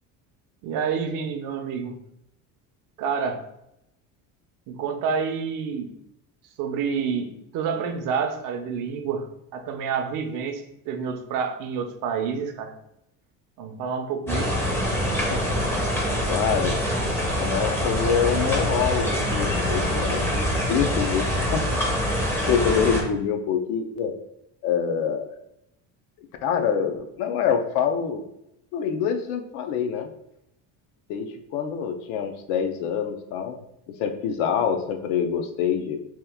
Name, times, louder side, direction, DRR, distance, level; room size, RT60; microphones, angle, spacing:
voice 1, 0.6-1.9 3.0-3.4 4.7-5.9 6.6-9.3 9.5-12.8 13.6-14.7, right 6 dB, 55° right, 7 dB, 0.5 m, -28 dB
sound 1, 14.3-23.0, equal, 5° left, 0.4 m, -25 dB
voice 2, 15.3-15.6 16.3-16.8 17.4-21.8 22.5-24.1 24.6-25.3 26.2-28.3 28.7-30.1 31.1-36.1, left 7 dB, 85° left, 6 dB, 0.6 m, -26 dB
2.9 x 2.3 x 3.4 m, 0.80 s
cardioid pair, 145°, 38 cm